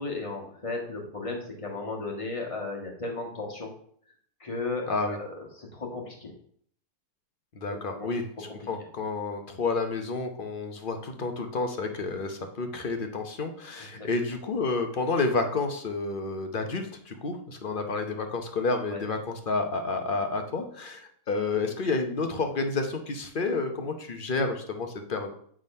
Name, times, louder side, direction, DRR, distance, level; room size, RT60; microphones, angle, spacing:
voice 1, 0.0-3.7 4.4-6.3 7.7-8.1 13.9-14.1 18.9-19.0, left 3 dB, 20° left, 0 dB, 1.5 m, -35 dB
voice 2, 4.9-5.2 7.5-25.3, left 3 dB, 40° left, 5 dB, 0.9 m, -30 dB
8.8 x 3.7 x 5.3 m, 0.62 s
omnidirectional pair, 1.6 m